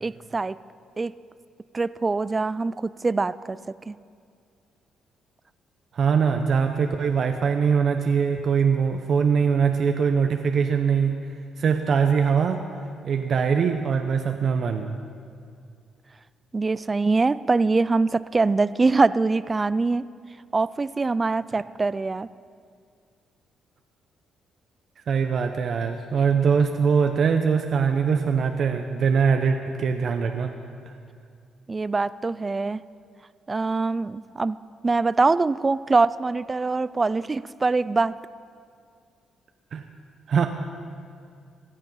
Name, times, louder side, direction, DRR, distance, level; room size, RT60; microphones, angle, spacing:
voice 1, 0.0-0.6 1.0-1.1 1.7-3.6 3.9-4.0 16.5-20.0 20.5-22.3 31.7-32.8 33.5-34.6 34.8-38.1, right 3 dB, 25° right, 17 dB, 0.3 m, -23 dB
voice 2, 5.9-11.2 11.6-12.6 13.0-15.0 25.1-30.5 30.9-31.0 39.7-39.9 40.3-40.5, right 6 dB, 55° right, 5 dB, 0.8 m, -22 dB
16.5 x 11.5 x 5.5 m, 2.3 s
cardioid pair, 90°, 0 cm